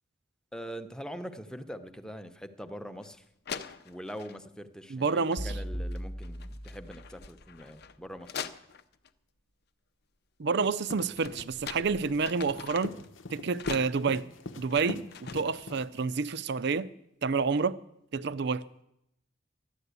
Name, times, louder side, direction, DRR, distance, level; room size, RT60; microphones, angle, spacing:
voice 1, 0.5-3.2 3.8-8.5, equal, 5° left, 0.8 m, -43 dB
sound 1, 3.0-3.1 3.5-4.4 5.2-5.6 5.9-9.1 10.6-13.1 13.5-15.6, left 7 dB, 60° left, 0.7 m, -43 dB
voice 2, 4.9-5.5 10.4-13.0 13.3-14.3 14.6-16.9 17.2-17.8 18.1-18.6, right 5 dB, 65° right, 0.5 m, -29 dB
sound 2, 5.4-7.5, equal, 30° left, 1.0 m, -38 dB
sound 3, 10.7-16.1, left 2 dB, 90° left, 0.9 m, -42 dB
12.5 x 11.0 x 8.2 m
head